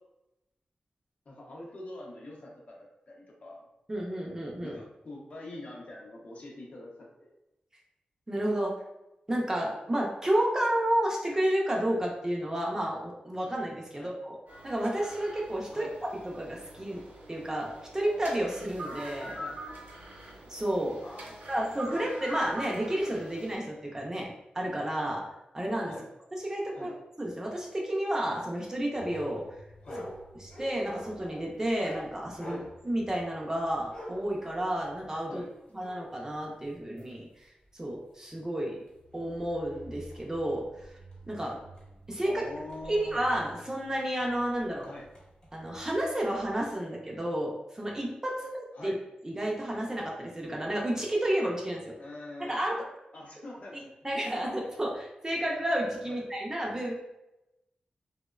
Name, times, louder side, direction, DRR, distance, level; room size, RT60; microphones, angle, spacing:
voice 1, 1.3-3.7 4.6-7.3 13.9-14.1 15.7-15.9 19.4-19.6 21.0-22.0 25.9-26.1 26.7-27.0 29.8-30.0 32.4-32.7 35.3-35.5 42.2-43.2 44.9-45.1 48.7-49.0 52.0-52.6 53.1-53.9 56.1-56.2, left 1 dB, 50° left, -2 dB, 0.6 m, -45 dB
voice 2, 3.9-4.8 8.3-8.7 9.3-14.4 14.6-15.9 16.2-17.0 17.3-19.4 20.5-21.0 21.5-25.2 25.5-25.9 26.3-26.9 27.2-29.5 30.4-32.6 32.8-35.4 35.7-37.5 37.7-38.8 39.1-40.9 41.3-41.6 42.1-42.4 42.9-44.9 45.5-48.5 48.8-49.0 49.2-51.9 52.4-52.8 54.0-56.9, right 1 dB, 20° right, -2 dB, 0.4 m, -31 dB
sound 1, 14.5-23.5, equal, 80° right, 0.7 m, -44 dB
sound 2, 29.0-37.1 37.7-37.8 38.4-38.5 38.9-46.7, equal, 35° left, 0.9 m, -47 dB
2.8 x 2.0 x 2.3 m, 0.92 s
wide cardioid pair, 130°, 3 cm